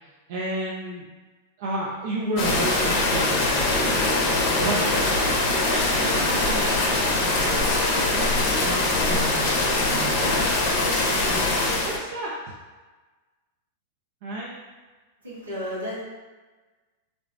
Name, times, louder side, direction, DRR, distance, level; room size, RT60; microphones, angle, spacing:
voice 1, 0.0-1.1 1.6-4.9 5.6-7.5 7.8-11.0 11.8-12.6 14.2-14.5, right 2 dB, 60° right, -4 dB, 0.4 m, -33 dB
voice 2, 2.2-2.5 15.2-16.0, equal, 90° right, -7 dB, 1.0 m, -33 dB
sound 1, 2.4-12.0, left 2 dB, 45° left, 0.6 m, -22 dB
3.2 x 2.0 x 2.6 m, 1.3 s
hypercardioid pair, 100°, 0 cm